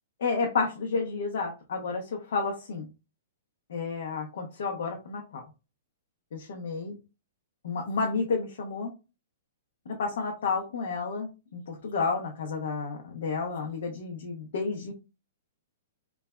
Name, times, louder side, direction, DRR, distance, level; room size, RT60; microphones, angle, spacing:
voice 1, 0.2-2.9 3.7-5.4 6.3-6.9 7.6-8.9 9.9-14.9, left 4 dB, 65° left, 1 dB, 0.7 m, -31 dB
3.2 x 2.2 x 2.3 m, 0.28 s
hypercardioid pair, 165°, 0 cm